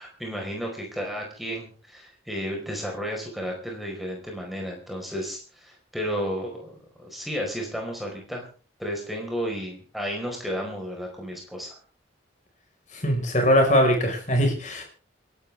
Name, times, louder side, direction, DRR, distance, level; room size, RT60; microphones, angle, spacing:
voice 1, 0.0-8.4 8.8-11.8, equal, ahead, 0 dB, 4.8 m, -33 dB
voice 2, 12.9-14.8, equal, 40° left, 2 dB, 5.2 m, -21 dB
28.0 x 12.0 x 3.6 m, 0.37 s
head